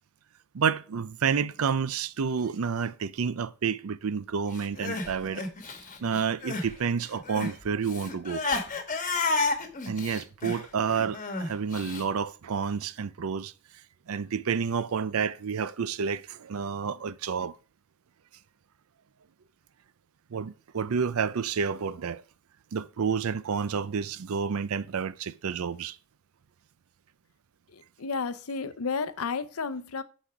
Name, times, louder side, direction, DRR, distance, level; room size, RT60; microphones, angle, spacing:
voice 1, 0.5-5.5 6.0-8.4 9.9-13.5 14.1-17.6 20.3-22.2 22.7-26.0, right 6 dB, 75° right, 0.5 m, -29 dB
Crying sobbing, 4.6-6.7 7.0-12.0, left 3 dB, 40° left, 1.2 m, -31 dB
voice 2, 27.7-30.0, left 5 dB, 90° left, 0.7 m, -32 dB
11.0 x 4.2 x 4.9 m
head